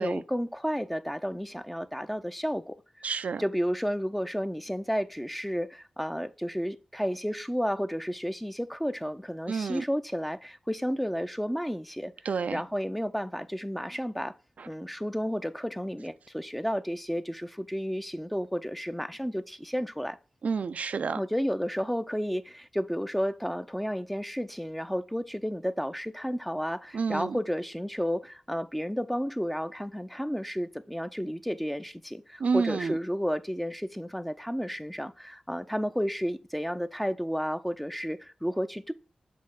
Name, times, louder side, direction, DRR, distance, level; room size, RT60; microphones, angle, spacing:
voice 1, 0.0-3.1 3.4-12.1 12.5-14.3 14.7-20.2 21.2-38.9, equal, 5° left, 0.5 m, -32 dB
voice 2, 3.0-3.4 9.5-9.8 12.2-12.6 14.6-14.7 20.4-21.2 26.9-27.4 32.4-33.0, right 5 dB, 70° right, 0.3 m, -29 dB
7.5 x 3.4 x 3.7 m
cardioid pair, 45°, 2 cm